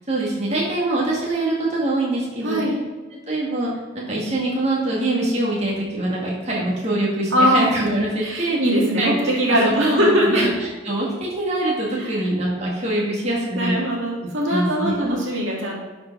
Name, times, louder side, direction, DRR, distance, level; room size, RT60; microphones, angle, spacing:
voice 1, 0.1-2.6 3.1-3.7 3.9-8.6 9.0-11.1 11.4-13.8 14.5-15.0, right 1 dB, 30° right, -4 dB, 1.9 m, -24 dB
voice 2, 2.4-2.8 7.3-7.6 8.2-10.4 12.0-12.2 13.6-15.8, equal, 75° right, -2 dB, 2.1 m, -21 dB
11.0 x 4.9 x 4.6 m, 1.3 s
head